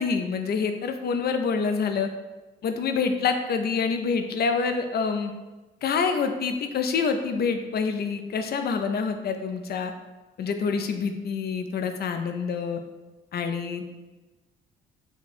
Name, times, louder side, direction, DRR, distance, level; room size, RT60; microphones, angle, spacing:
voice 1, 0.0-2.1 2.6-5.3 5.8-9.9 10.4-12.8 13.3-13.8, left 5 dB, 55° left, 7 dB, 0.5 m, -26 dB
4.4 x 2.2 x 4.1 m, 1.2 s
cardioid pair, 90°, 20 cm